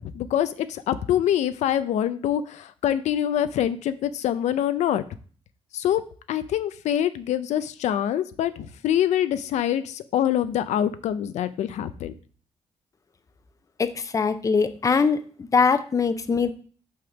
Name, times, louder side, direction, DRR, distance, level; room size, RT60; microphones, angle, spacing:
voice 1, 0.0-5.0 5.7-6.0 6.3-12.1, left 10 dB, 85° left, 12 dB, 0.4 m, -25 dB
voice 2, 13.8-15.2 15.5-16.5, left 5 dB, 30° left, 11 dB, 0.5 m, -22 dB
6.3 x 3.5 x 5.8 m, 0.43 s
cardioid pair, 110°, 11 cm